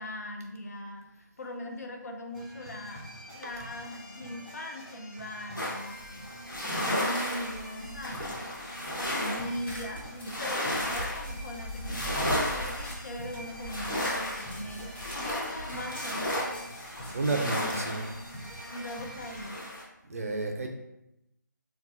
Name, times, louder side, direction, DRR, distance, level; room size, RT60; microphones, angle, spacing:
voice 1, 0.0-3.1 3.3-6.0 6.6-8.4 9.0-16.4 18.7-19.7, left 1 dB, 55° left, 2 dB, 0.5 m, -40 dB
sound 1, 2.3-19.5, right 1 dB, 5° left, 0.6 m, -46 dB
sound 2, 5.5-19.8, left 1 dB, 85° left, 1.2 m, -34 dB
sound 3, 9.5-13.6 13.9-18.7, left 1 dB, 35° left, 1.0 m, -47 dB
voice 2, 17.1-18.1 20.1-20.7, right 3 dB, 45° right, 3 dB, 0.5 m, -30 dB
3.8 x 2.3 x 2.5 m, 0.87 s
figure-of-eight pair, 155°, 10 cm